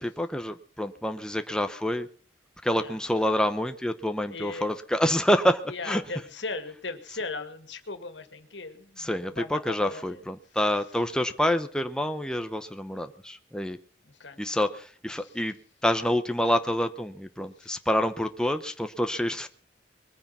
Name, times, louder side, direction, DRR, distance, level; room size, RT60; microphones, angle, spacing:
voice 1, 0.0-2.1 2.6-6.0 9.0-13.8 14.4-15.5 15.8-19.5, equal, 5° left, 8 dB, 0.8 m, -27 dB
voice 2, 4.3-4.7 5.7-10.2 14.2-14.4 15.2-15.3 17.6-17.7, left 3 dB, 85° left, 10 dB, 2.2 m, -38 dB
22.0 x 9.6 x 6.0 m, 0.42 s
head